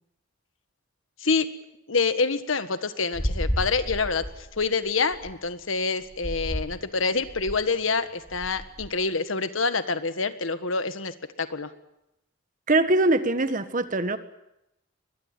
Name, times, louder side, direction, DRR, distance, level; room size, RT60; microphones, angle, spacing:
voice 1, 1.9-4.2 4.5-11.7, left 4 dB, 90° left, 11 dB, 1.6 m, -26 dB
sound 1, 3.1-5.3 6.1-6.8 7.2-7.7 8.2-8.9, equal, 20° left, 3.9 m, -32 dB
voice 2, 12.7-14.2, right 2 dB, 40° right, 11 dB, 1.5 m, -22 dB
22.0 x 21.5 x 9.0 m, 0.87 s
head